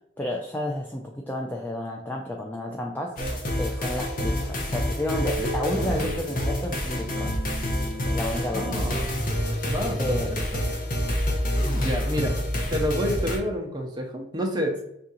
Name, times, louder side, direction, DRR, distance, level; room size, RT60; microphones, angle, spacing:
voice 1, 0.2-7.4 8.1-8.9 10.0-10.3, left 1 dB, 10° left, 0 dB, 0.3 m, -31 dB
sound 1, 3.2-13.4, equal, 50° left, 0.7 m, -28 dB
sound 2, 5.0-12.9, equal, 55° right, 0.8 m, -32 dB
voice 2, 8.5-9.1 9.7-10.2 10.5-10.6 11.6-12.4 12.6-14.8, equal, 25° right, 1 dB, 0.7 m, -28 dB
3.6 x 2.5 x 4.2 m, 0.78 s
head